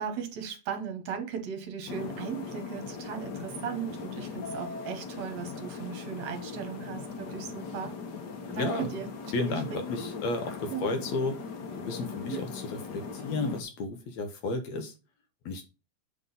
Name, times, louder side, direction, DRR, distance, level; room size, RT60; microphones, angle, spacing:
voice 1, 0.0-7.9 8.5-9.1 9.3-9.8 10.7-10.9 12.3-12.5, right 7 dB, 65° right, 2.3 m, -37 dB
sound 1, 1.9-13.6, left 5 dB, 85° left, 0.9 m, -39 dB
voice 2, 8.5-8.9 9.3-11.4 11.8-14.9 15.5-15.6, left 3 dB, 70° left, 2.0 m, -33 dB
8.0 x 3.8 x 5.4 m
omnidirectional pair, 3.6 m